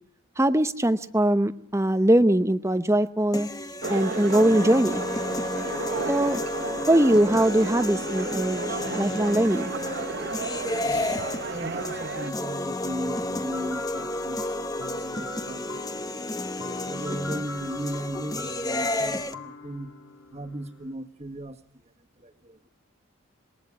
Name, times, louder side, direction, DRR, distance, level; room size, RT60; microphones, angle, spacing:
voice 1, 0.4-3.5 3.9-5.0 6.1-6.4 6.9-9.7, right 1 dB, 15° right, 11 dB, 0.9 m, -21 dB
sound 1, 3.3-19.3, left 1 dB, 15° left, 1.1 m, -31 dB
sound 2, 3.8-12.3, right 4 dB, 55° right, 0.9 m, -33 dB
voice 2, 10.8-14.8 15.1-15.7 16.8-19.9 20.3-21.9 22.2-22.7, right 1 dB, 30° right, 5 dB, 1.8 m, -36 dB
sound 3, 13.1-20.9, left 3 dB, 60° left, 2.7 m, -42 dB
27.0 x 21.5 x 6.3 m, 0.63 s
head